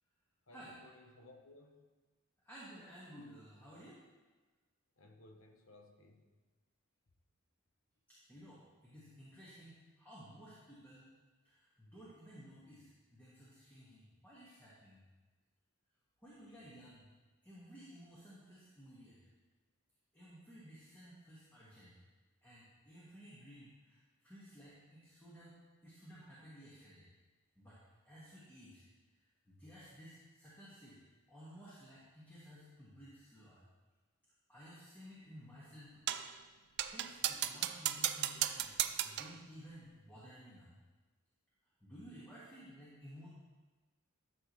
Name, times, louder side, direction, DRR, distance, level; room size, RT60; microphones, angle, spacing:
voice 1, 0.5-1.9 5.0-6.3, left 2 dB, 65° left, 3 dB, 1.1 m, -59 dB
voice 2, 2.4-4.0 8.1-11.0 11.4-15.0 16.2-17.1 17.4-19.2 20.1-22.0 22.4-25.6 25.8-27.1 27.5-27.8 28.0-28.8 29.5-31.0 31.3-33.6 34.5-36.1 36.6-38.8 39.0-40.7 41.8-43.3, equal, 10° left, -9 dB, 1.7 m, -55 dB
sound 1, 36.1-36.3 36.8-39.4, right 12 dB, 50° right, 0.4 m, -36 dB
12.5 x 7.0 x 3.2 m, 1.2 s
head